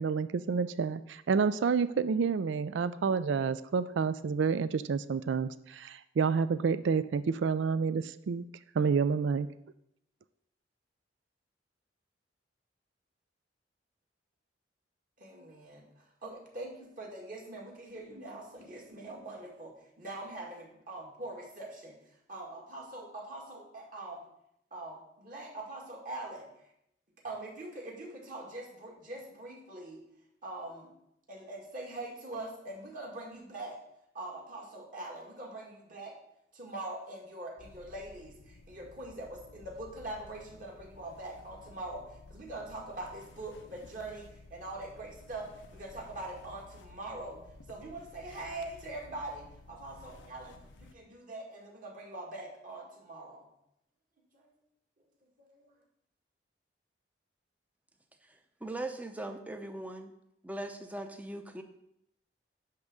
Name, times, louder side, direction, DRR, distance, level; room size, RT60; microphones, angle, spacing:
voice 1, 0.0-8.4 8.7-9.5, right 5 dB, 75° right, 14 dB, 0.4 m, -29 dB
voice 2, 15.2-22.0 22.3-24.2 24.7-26.5 27.2-30.0 30.4-30.9 31.3-33.8 34.1-36.2 36.5-47.4 47.7-53.5 54.3-54.5 55.4-55.7, right 2 dB, 45° right, -1 dB, 2.1 m, -43 dB
sound 1, 37.6-50.9, left 2 dB, 80° left, 0.7 m, -54 dB
voice 3, 58.3-60.1 60.4-61.6, right 1 dB, 10° right, 6 dB, 0.7 m, -40 dB
10.5 x 3.6 x 6.6 m, 0.79 s
head